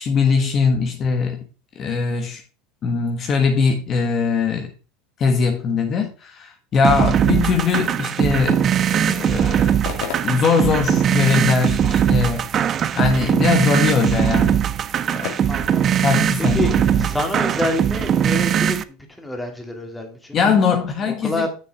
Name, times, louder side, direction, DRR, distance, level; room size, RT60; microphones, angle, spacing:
voice 1, 0.0-1.4 1.7-2.4 2.8-4.7 5.2-8.6 8.9-9.7 10.2-12.5 12.9-14.6 15.1-15.3 16.0-17.1 20.3-21.5, left 5 dB, 40° left, 4 dB, 1.4 m, -21 dB
sound 1, 6.8-18.8, right 9 dB, 35° right, 0.5 m, -20 dB
sound 2, 9.3-16.9, left 7 dB, 65° left, 2.2 m, -39 dB
voice 2, 15.5-15.9 16.4-20.4 21.0-21.5, left 2 dB, 5° left, 3 dB, 2.2 m, -27 dB
6.8 x 6.8 x 4.6 m, 0.35 s
supercardioid pair, 110°, 0 cm